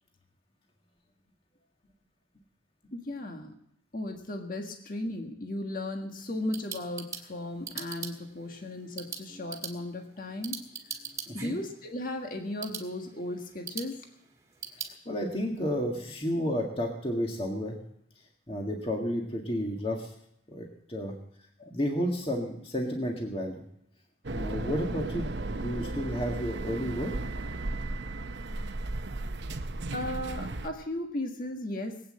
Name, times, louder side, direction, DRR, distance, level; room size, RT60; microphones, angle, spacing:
voice 1, 2.9-3.5 3.9-10.6 11.3-14.0 21.6-21.7 29.9-32.0, left 1 dB, 45° left, 3 dB, 1.6 m, -36 dB
sound 1, 6.2-14.9, right 6 dB, 15° right, 1.8 m, -43 dB
voice 2, 11.3-11.6 15.1-17.8 18.5-20.1 20.5-21.1 21.7-23.6 24.3-27.1, equal, 30° left, 1 dB, 1.9 m, -32 dB
sound 2, 24.2-30.7, right 2 dB, 65° right, 0.9 m, -35 dB
20.0 x 8.8 x 7.7 m, 0.73 s
head